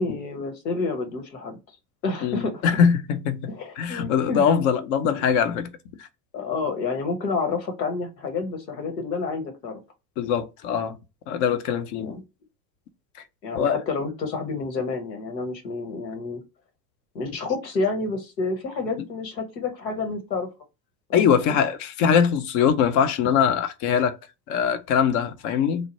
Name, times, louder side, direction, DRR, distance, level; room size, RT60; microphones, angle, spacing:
voice 1, 0.0-1.6 2.0-2.7 3.4-4.5 6.3-9.8 12.0-12.2 13.4-16.4 17.1-20.5 21.1-21.6, left 4 dB, 85° left, 1.0 m, -29 dB
voice 2, 2.2-3.5 3.8-5.7 10.2-11.0 11.3-12.2 13.5-13.8 21.1-24.2 24.5-25.9, left 7 dB, 40° left, 0.5 m, -22 dB
3.1 x 2.1 x 2.8 m
hypercardioid pair, 80°, 50 cm